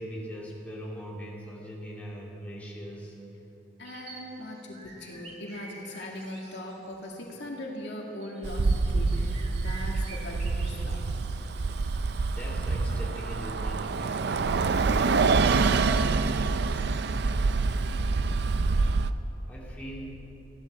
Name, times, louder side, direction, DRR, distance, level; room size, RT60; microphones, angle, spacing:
voice 1, 0.0-3.2 12.3-14.5 19.5-20.1, equal, 10° left, -5 dB, 2.7 m, -40 dB
voice 2, 3.8-11.1, left 1 dB, 65° left, -1 dB, 2.1 m, -40 dB
sound 1, 3.8-7.4 7.9-12.1 13.3-13.4 13.7-14.0, right 3 dB, 35° right, 1.8 m, -49 dB
Bus, 8.4-19.1, right 4 dB, 60° right, 0.5 m, -26 dB
16.0 x 11.5 x 7.1 m, 3.0 s
head